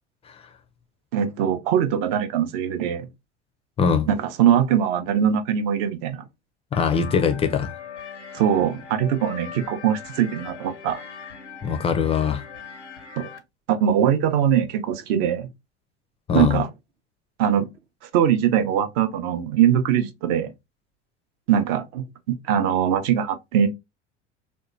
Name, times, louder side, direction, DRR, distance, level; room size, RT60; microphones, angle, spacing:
voice 1, 1.1-3.1 4.1-6.2 8.3-11.0 13.2-13.3 13.7-15.5 16.3-16.7 17.4-17.7 18.1-20.5 21.5-23.7, right 9 dB, 50° right, 0.6 m, -22 dB
voice 2, 3.8-4.1 6.7-7.7 11.6-12.4 16.3-16.6, left 6 dB, 20° left, 0.4 m, -22 dB
sound 1, 6.7-13.4, left 6 dB, 85° left, 0.5 m, -40 dB
3.5 x 2.2 x 2.6 m
figure-of-eight pair, 70°, 34 cm